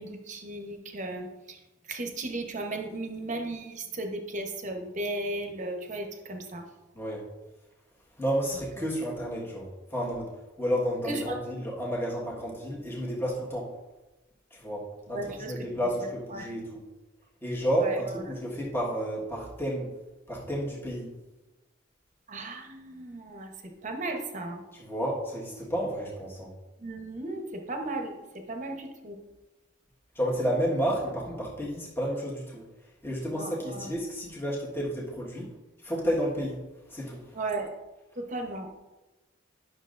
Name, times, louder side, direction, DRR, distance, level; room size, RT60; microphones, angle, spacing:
voice 1, 0.0-1.6 1.9-6.7 11.1-11.4 15.1-15.7 16.0-16.5 17.8-18.2 22.3-24.6 26.8-29.2 33.3-33.9 37.3-37.7 38.2-38.7, right 2 dB, 40° right, 3 dB, 1.0 m, -36 dB
voice 2, 6.9-7.3 8.2-10.3 10.6-13.7 14.5-15.2 15.4-16.8 17.4-19.9 20.3-21.1 24.8-26.5 30.1-32.6 33.0-35.5 35.8-36.6 36.9-37.2, equal, 10° left, -5 dB, 1.5 m, -31 dB
11.0 x 6.4 x 2.5 m, 1.1 s
head